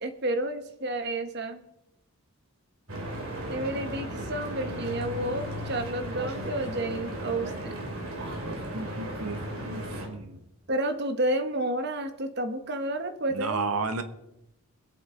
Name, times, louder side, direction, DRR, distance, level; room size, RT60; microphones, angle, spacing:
voice 1, 0.0-1.6 3.5-7.8 10.7-13.7, right 1 dB, 50° right, 8 dB, 1.1 m, -30 dB
Stream / Boat Water vehicle, 2.9-10.1, right 1 dB, 65° right, 2.9 m, -35 dB
voice 2, 8.4-10.4 13.3-14.0, right 3 dB, 85° right, 9 dB, 1.2 m, -33 dB
21.5 x 8.4 x 3.8 m, 0.87 s
head